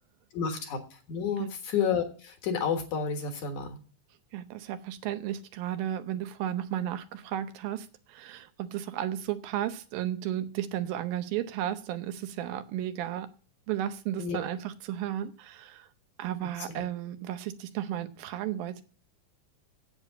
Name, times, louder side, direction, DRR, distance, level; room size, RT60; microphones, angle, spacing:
voice 1, 0.3-0.8 1.1-3.8 14.2-14.4 16.7-16.8, left 6 dB, 60° left, 2.7 m, -30 dB
voice 2, 4.3-13.3 13.7-15.9 16.2-18.8, right 11 dB, 85° right, 2.6 m, -34 dB
8.3 x 8.2 x 8.3 m
omnidirectional pair, 4.1 m